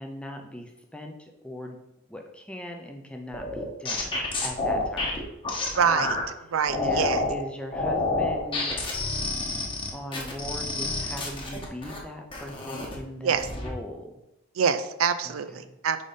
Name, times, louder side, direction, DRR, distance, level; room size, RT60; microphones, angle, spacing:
voice 1, 0.0-1.8 2.1-4.1 4.4-5.2 6.7-8.9 9.9-14.1 15.3-15.8, equal, 5° left, 2 dB, 0.6 m, -39 dB
sound 1, 3.3-6.2 6.7-7.3 7.7-12.0 12.3-13.0 13.3-13.7, left 2 dB, 25° left, 1.0 m, -29 dB
voice 2, 5.8-6.2 6.5-7.2 13.2-13.5 14.5-16.0, right 7 dB, 85° right, 11 dB, 0.4 m, -25 dB
5.1 x 4.2 x 5.1 m, 0.89 s
head